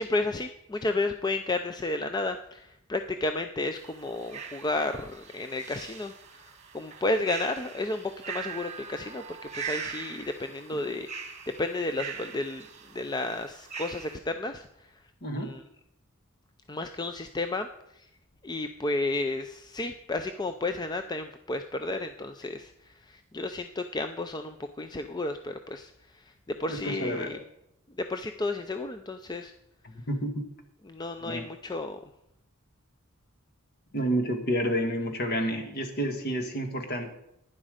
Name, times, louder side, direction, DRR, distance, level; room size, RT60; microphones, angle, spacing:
voice 1, 0.0-12.7 12.9-14.9 15.4-15.6 16.7-17.7 17.9-18.1 18.4-27.4 28.0-29.5 30.8-32.0, left 2 dB, 20° left, 8 dB, 0.4 m, -32 dB
sound 1, 3.7-14.2, right 6 dB, 30° right, 1.5 m, -41 dB
voice 2, 15.2-15.5 26.7-27.3 29.8-30.4 31.2-31.5 33.9-37.1, equal, 50° left, 5 dB, 1.8 m, -30 dB
11.5 x 10.0 x 5.0 m, 0.81 s
head